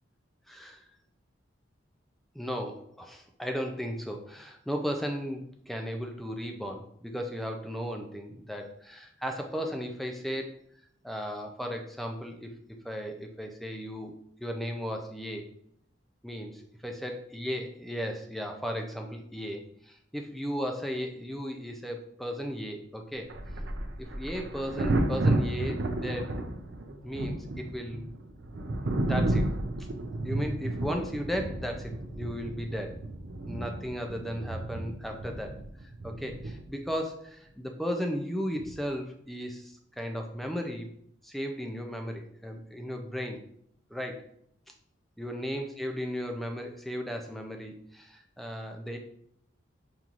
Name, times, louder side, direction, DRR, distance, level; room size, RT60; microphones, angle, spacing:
voice 1, 0.5-0.8 2.3-10.6 11.0-12.5 12.8-14.1 14.4-15.5 16.2-23.3 24.0-26.4 27.0-28.1 29.0-29.5 30.2-33.0 33.5-35.6 35.8-40.9 41.2-43.4 43.9-44.3 45.2-49.0, equal, ahead, 3 dB, 0.4 m, -35 dB
sound 1, 23.3-25.6, equal, 50° left, 1.3 m, -41 dB
Thunder, 23.3-37.0 38.6-38.8, right 1 dB, 65° right, 0.5 m, -32 dB
5.3 x 3.0 x 2.4 m, 0.70 s
head